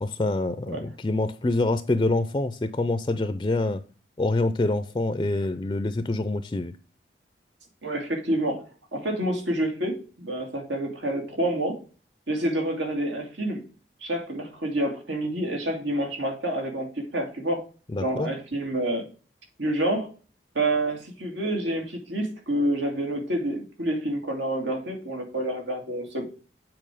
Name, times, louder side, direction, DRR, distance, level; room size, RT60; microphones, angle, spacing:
voice 1, 0.0-3.8 4.2-6.7 17.9-18.3, left 2 dB, 25° left, 12 dB, 0.4 m, -26 dB
voice 2, 7.8-8.7 8.9-11.8 12.3-13.6 14.0-17.6 18.0-19.1 19.6-20.1 20.5-26.3, right 1 dB, 90° right, 2 dB, 2.3 m, -28 dB
7.7 x 4.6 x 4.8 m, 0.37 s
head